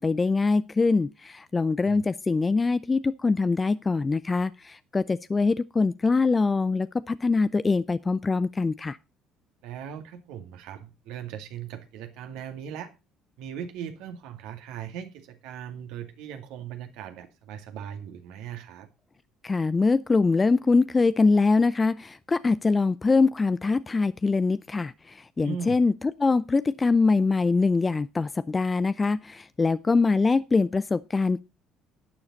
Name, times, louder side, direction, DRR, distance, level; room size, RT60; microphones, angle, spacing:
voice 1, 0.0-9.0 19.4-25.9 26.2-31.4, left 4 dB, 25° left, 0.5 m, -23 dB
voice 2, 9.6-12.9 13.4-18.9 25.4-25.8, right 8 dB, 70° right, 2.1 m, -39 dB
12.0 x 9.5 x 4.1 m
hypercardioid pair, 60°, 0 cm